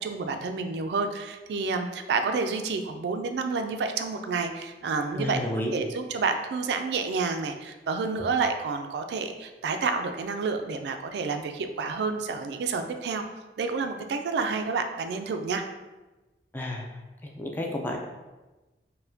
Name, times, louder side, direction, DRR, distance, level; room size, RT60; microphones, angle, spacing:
voice 1, 0.0-5.4 5.7-13.2 13.6-15.6, right 4 dB, 70° right, 7 dB, 0.3 m, -29 dB
voice 2, 5.1-5.7 16.5-16.9 17.2-18.0, left 1 dB, 10° left, 0 dB, 0.3 m, -31 dB
4.0 x 2.1 x 2.6 m, 1.1 s
head